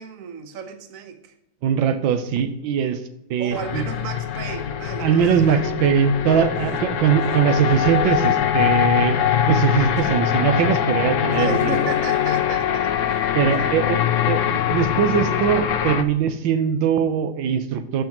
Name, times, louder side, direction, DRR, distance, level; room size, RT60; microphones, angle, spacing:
voice 1, 0.0-1.3 3.4-5.3 5.8-5.9 6.6-7.4 10.0-10.2 11.4-13.7, right 5 dB, 50° right, 7 dB, 1.2 m, -35 dB
voice 2, 1.6-3.0 3.3-3.8 5.0-9.2 9.5-11.8 13.3-14.0 14.3-18.0, right 8 dB, 80° right, 9 dB, 1.4 m, -21 dB
sound 1, 3.5-16.0, left 10 dB, 70° left, 0.7 m, -22 dB
15.5 x 5.8 x 3.0 m, 0.85 s
omnidirectional pair, 2.1 m